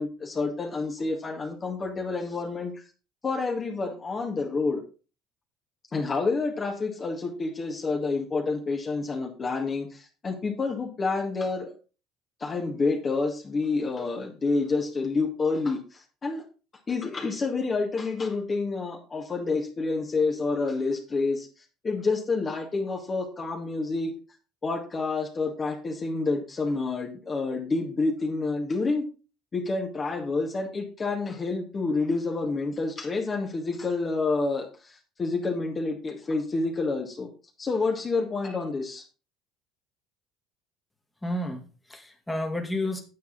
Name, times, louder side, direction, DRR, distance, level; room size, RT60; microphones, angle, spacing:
voice 1, 0.0-2.7 3.2-4.8 5.9-11.7 12.4-16.4 16.9-21.5 21.8-24.1 24.6-29.0 29.5-37.3 37.6-39.0, left 3 dB, 30° left, 1 dB, 2.0 m, -28 dB
voice 2, 41.2-43.0, left 1 dB, 10° left, 3 dB, 2.2 m, -31 dB
9.6 x 8.0 x 4.0 m, 0.33 s
hypercardioid pair, 65°, 0 cm